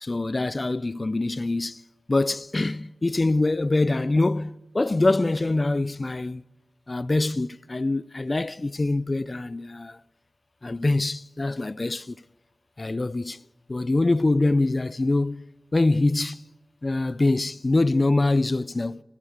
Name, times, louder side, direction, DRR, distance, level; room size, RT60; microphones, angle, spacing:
voice 1, 0.0-1.8 2.1-6.4 6.9-10.0 10.6-12.2 12.8-13.4 13.7-15.4 15.7-16.4 16.8-19.0, left 2 dB, 40° left, 0.5 m, -24 dB
14.0 x 12.0 x 8.0 m
cardioid pair, 40°, 0 cm